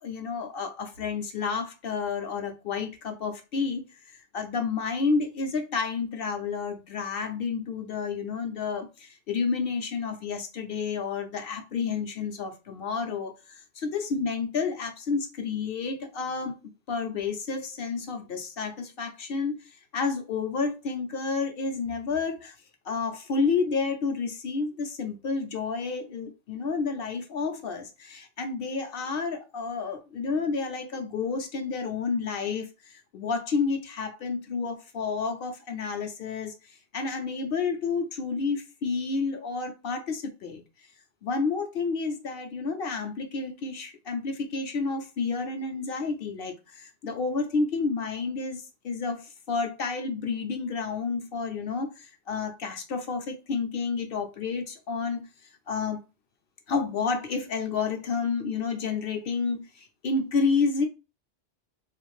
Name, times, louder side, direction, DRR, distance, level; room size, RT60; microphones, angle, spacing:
voice 1, 0.0-16.6 16.9-19.6 19.9-22.5 22.8-36.5 36.9-40.6 41.2-55.3 55.7-56.0 56.7-60.8, left 4 dB, 60° left, 0.8 m, -30 dB
3.4 x 2.5 x 3.1 m
omnidirectional pair, 1.2 m